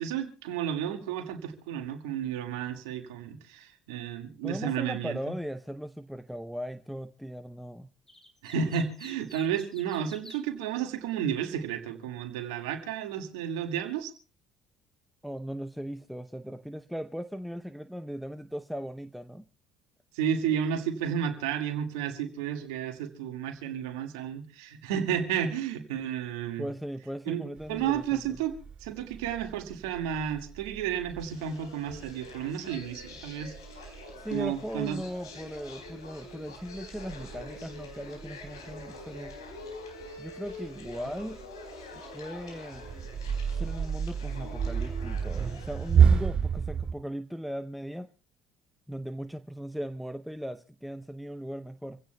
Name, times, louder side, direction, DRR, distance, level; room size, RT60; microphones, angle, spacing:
voice 1, 0.0-5.3 8.4-14.1 20.1-26.7 27.3-27.4 27.7-28.5 28.8-33.9 34.3-35.0, right 8 dB, 70° right, 1.9 m, -32 dB
voice 2, 4.4-7.9 15.2-19.5 26.6-28.2 34.2-39.3 40.2-41.4 42.1-42.8 43.5-48.1 48.9-52.0, equal, ahead, 0.7 m, -38 dB
sound 1, 8.1-10.4, left 1 dB, 15° left, 4.2 m, -50 dB
sound 2, 27.6-46.9, right 7 dB, 40° right, 5.4 m, -31 dB
sound 3, 31.2-46.0, left 2 dB, 85° left, 4.3 m, -46 dB
26.5 x 16.0 x 2.3 m
hypercardioid pair, 60°, 2 cm